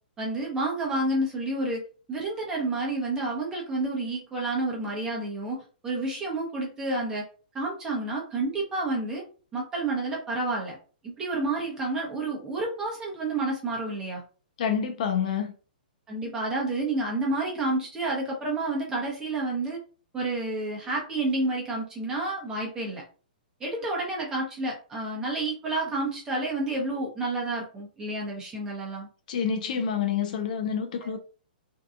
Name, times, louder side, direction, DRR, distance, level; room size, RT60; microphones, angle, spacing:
voice 1, 0.2-1.8 2.1-7.2 7.5-9.2 9.5-10.8 11.0-14.2 16.1-19.8 20.1-23.0 23.6-29.1 31.0-31.2, right 2 dB, 10° right, 0.8 m, -30 dB
voice 2, 14.6-15.5 29.3-31.2, left 7 dB, 50° left, 0.4 m, -28 dB
2.6 x 2.2 x 2.4 m
hypercardioid pair, 155°, 5 cm